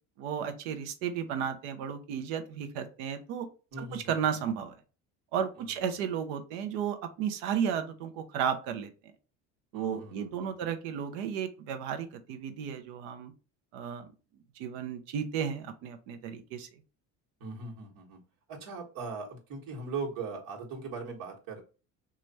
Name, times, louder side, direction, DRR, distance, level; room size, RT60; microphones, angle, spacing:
voice 1, 0.2-3.5 3.8-4.7 5.3-8.9 9.7-13.3 13.7-14.1 14.6-16.7, right 8 dB, 85° right, 8 dB, 0.8 m, -33 dB
voice 2, 3.7-4.1 5.6-6.0 9.7-10.7 17.4-18.2 18.5-21.6, right 4 dB, 65° right, -2 dB, 1.4 m, -40 dB
3.2 x 2.5 x 4.0 m, 0.33 s
supercardioid pair, 100°, 37 cm